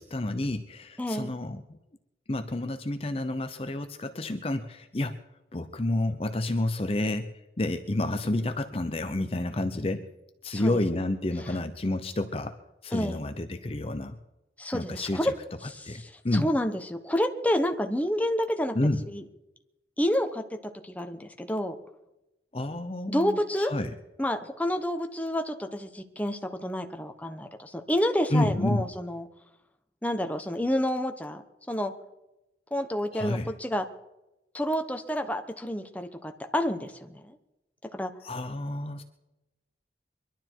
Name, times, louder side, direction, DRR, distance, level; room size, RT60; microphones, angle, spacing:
voice 1, 0.0-1.8 2.3-5.2 5.5-7.3 7.6-10.1 10.4-12.5 12.8-14.2 14.7-15.3 15.8-16.5 18.7-19.0 22.5-23.9 28.3-28.8 33.1-33.5 38.2-39.0, left 1 dB, 35° left, 9 dB, 0.7 m, -29 dB
voice 2, 1.0-1.3 10.5-10.8 12.9-13.2 14.6-15.3 15.6-18.8 19.1-19.2 20.0-21.8 23.1-23.7 24.2-29.3 30.0-31.4 31.7-31.9 32.7-33.9 34.5-37.4 37.9-38.1, equal, 10° left, 6 dB, 1.0 m, -29 dB
23.0 x 12.0 x 4.6 m, 0.95 s
head